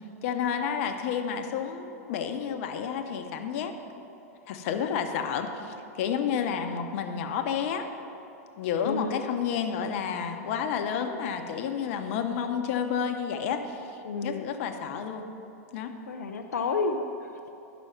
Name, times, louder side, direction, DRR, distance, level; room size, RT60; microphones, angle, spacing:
voice 1, 0.2-3.7 4.5-7.9 8.6-15.2 15.7-15.9, left 7 dB, 60° left, 6 dB, 0.9 m, -30 dB
voice 2, 8.8-9.2 14.0-14.4 16.1-17.4, left 4 dB, 90° left, 4 dB, 0.5 m, -30 dB
10.5 x 6.1 x 5.8 m, 2.8 s
hypercardioid pair, 110°, 8 cm